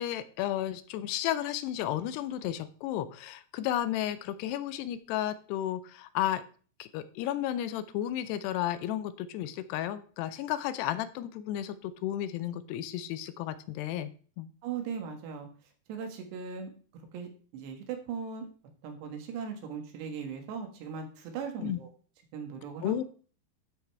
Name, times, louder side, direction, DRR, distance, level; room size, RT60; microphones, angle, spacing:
voice 1, 0.0-6.4 6.8-14.1 14.4-14.5 21.6-21.8 22.8-23.0, left 12 dB, 85° left, 13 dB, 2.8 m, -33 dB
voice 2, 14.6-15.5 15.9-16.7 17.1-18.5 18.8-21.9 22.3-22.9, right 6 dB, 90° right, 4 dB, 3.8 m, -38 dB
12.5 x 5.4 x 4.6 m, 0.41 s
omnidirectional pair, 4.8 m